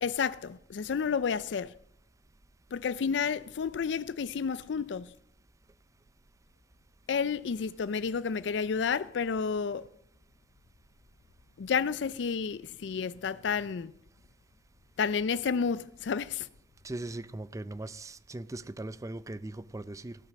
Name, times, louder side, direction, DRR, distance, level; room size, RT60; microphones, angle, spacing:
voice 1, 0.0-1.7 2.7-5.1 7.1-9.9 11.6-13.9 15.0-16.5, left 6 dB, 70° left, 0.4 m, -31 dB
voice 2, 16.8-20.2, right 2 dB, 15° right, 0.4 m, -39 dB
15.0 x 9.1 x 6.4 m
head